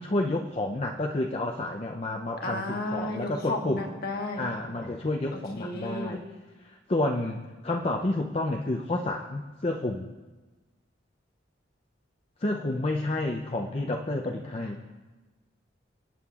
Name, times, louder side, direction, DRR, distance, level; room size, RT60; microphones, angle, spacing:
voice 1, 0.0-3.9 4.4-6.2 6.9-10.1 12.4-14.8, left 2 dB, 30° left, 1 dB, 0.5 m, -30 dB
voice 2, 2.4-4.5 5.3-6.2, left 2 dB, 55° left, 2 dB, 1.4 m, -33 dB
25.0 x 9.1 x 2.4 m, 1.2 s
head